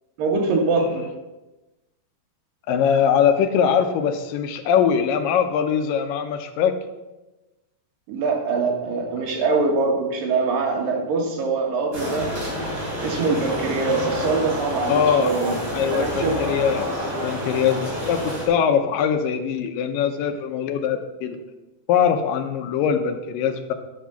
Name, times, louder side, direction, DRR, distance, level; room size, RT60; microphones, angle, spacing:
voice 1, 0.2-1.1 8.1-12.3 13.0-15.5 15.9-16.4, right 3 dB, 85° right, 1 dB, 3.4 m, -23 dB
voice 2, 2.7-6.8 14.9-15.3 15.7-21.4 21.9-23.7, left 7 dB, 90° left, 7 dB, 2.6 m, -22 dB
sound 1, 11.9-18.5, equal, 30° right, 3.7 m, -28 dB
10.5 x 7.5 x 5.8 m, 1.1 s
omnidirectional pair, 3.9 m